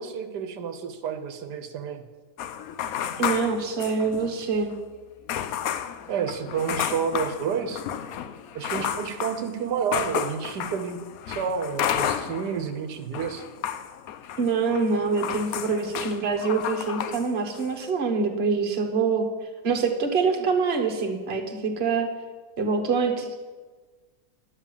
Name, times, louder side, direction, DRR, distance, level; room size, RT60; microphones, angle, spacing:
voice 1, 0.0-2.0 6.1-7.8 8.5-11.0 11.3-13.4, right 7 dB, 85° right, 7 dB, 1.5 m, -30 dB
sound 1, 2.4-4.4 4.7-4.8 5.3-12.7 13.0-17.3 17.5-17.9, left 9 dB, 70° left, 1.0 m, -32 dB
voice 2, 3.2-4.7 14.4-19.3 19.6-22.1 22.6-23.3, right 4 dB, 40° right, 4 dB, 1.4 m, -25 dB
11.0 x 7.3 x 7.2 m, 1.4 s
omnidirectional pair, 1.7 m